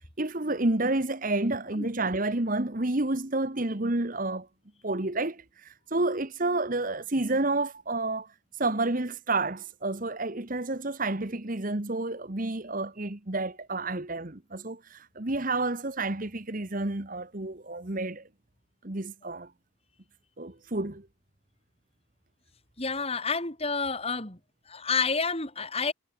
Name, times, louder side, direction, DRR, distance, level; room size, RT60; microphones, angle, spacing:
voice 1, 0.2-4.5 4.8-8.3 8.6-18.3 18.8-19.5 20.4-21.1, right 2 dB, 40° right, 1.4 m, -30 dB
voice 2, 22.8-24.4 24.7-25.9, left 4 dB, 30° left, 4.3 m, -29 dB
head